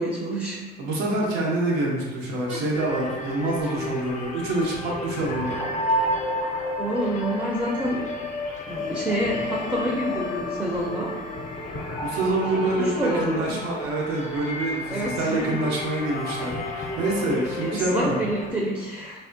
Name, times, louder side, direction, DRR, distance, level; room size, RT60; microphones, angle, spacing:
voice 1, 0.0-0.7 2.5-2.6 3.6-3.8 6.8-8.0 8.7-11.1 12.5-13.6 14.9-15.5 17.6-19.2, right 1 dB, 15° right, -3 dB, 0.5 m, -28 dB
voice 2, 0.8-5.6 12.0-18.2, right 2 dB, 85° right, -3 dB, 0.8 m, -26 dB
sound 1, 2.7-18.5, left 1 dB, 45° left, 0.5 m, -31 dB
3.4 x 2.1 x 2.6 m, 1.2 s
cardioid pair, 110°, 17 cm